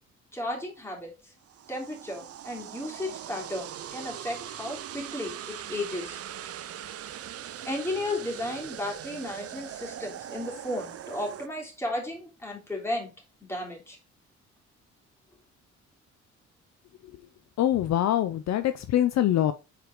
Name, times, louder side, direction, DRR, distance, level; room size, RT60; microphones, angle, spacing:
voice 1, 0.3-1.3 1.7-6.2 7.6-13.1 13.4-14.0, left 1 dB, 10° left, 3.1 m, -34 dB
sound 1, 1.4-11.5, right 10 dB, 50° right, 0.5 m, -41 dB
voice 2, 17.6-19.5, left 12 dB, 60° left, 0.6 m, -24 dB
5.1 x 4.7 x 4.8 m
cardioid pair, 90°, 30 cm